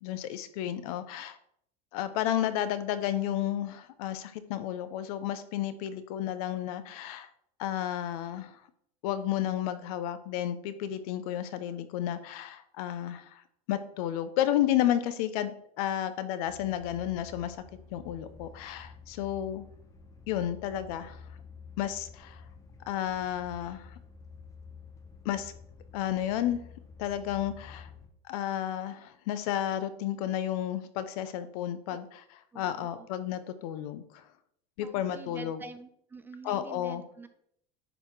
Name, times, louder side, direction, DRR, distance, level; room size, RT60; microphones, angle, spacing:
voice 1, 0.0-1.4 1.9-7.3 7.6-8.6 9.0-13.4 13.7-17.6 17.9-19.7 20.3-21.2 21.8-22.4 22.9-23.9 25.2-25.5 25.9-26.6 27.0-27.9 28.3-32.2 32.5-34.2 34.8-35.6 36.4-37.0, left 11 dB, 70° left, 12 dB, 0.8 m, -32 dB
sound 1, 16.5-28.1, left 5 dB, 15° left, 0.8 m, -50 dB
voice 2, 32.5-33.1 34.8-37.3, right 4 dB, 10° right, 10 dB, 0.4 m, -46 dB
10.0 x 4.3 x 4.6 m, 0.70 s
cardioid pair, 165°, 20 cm